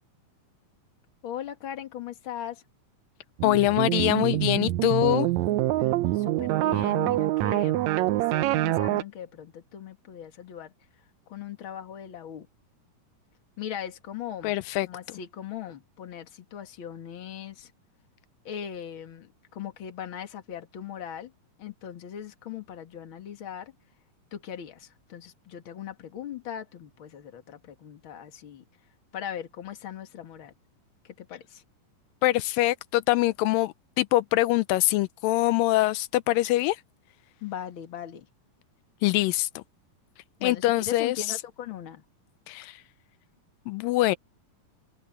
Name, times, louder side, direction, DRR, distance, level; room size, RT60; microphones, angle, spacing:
voice 1, 1.2-2.6 5.8-7.9 8.1-10.7 11.3-12.5 13.6-14.6 14.8-17.7 18.4-21.3 21.6-23.7 24.3-28.6 29.1-30.5 31.0-31.6 37.4-38.3 40.4-42.0, left 9 dB, 45° left, 2.2 m, -39 dB
voice 2, 3.4-5.3 14.4-14.9 32.2-36.8 39.0-39.6 40.4-41.2 42.5-42.8 43.7-44.2, left 17 dB, 90° left, 2.3 m, -24 dB
sound 1, 3.4-9.0, right 16 dB, 80° right, 1.6 m, -25 dB
open air
omnidirectional pair, 4.0 m